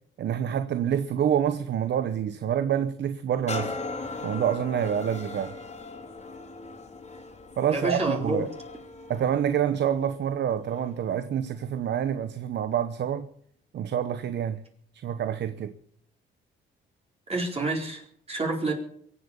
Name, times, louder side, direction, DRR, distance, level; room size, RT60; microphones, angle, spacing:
voice 1, 0.2-3.8 4.2-5.5 7.6-8.5 9.1-13.3 13.7-14.6 15.0-15.7, right 9 dB, 60° right, 1.0 m, -27 dB
sound 1, 3.5-11.1 11.6-11.8, left 3 dB, 35° left, 3.1 m, -39 dB
voice 2, 7.7-8.5 17.3-18.7, right 2 dB, 30° right, 4.3 m, -28 dB
23.5 x 8.3 x 7.1 m
cardioid pair, 90°, 20 cm